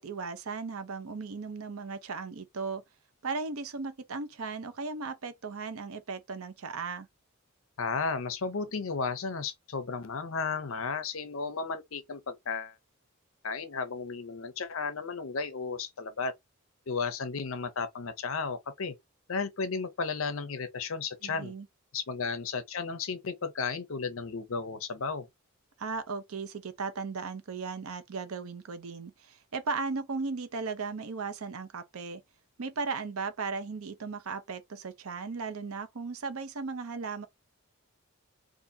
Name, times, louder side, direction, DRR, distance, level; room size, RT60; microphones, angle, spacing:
voice 1, 0.0-2.8 3.2-7.1 21.2-21.7 25.8-32.2 32.6-37.3, right 4 dB, 80° right, 0.6 m, -36 dB
voice 2, 7.8-12.8 13.4-16.3 16.9-18.9 19.3-21.5 21.9-25.3, left 5 dB, 65° left, 0.6 m, -34 dB
3.7 x 2.5 x 2.7 m
head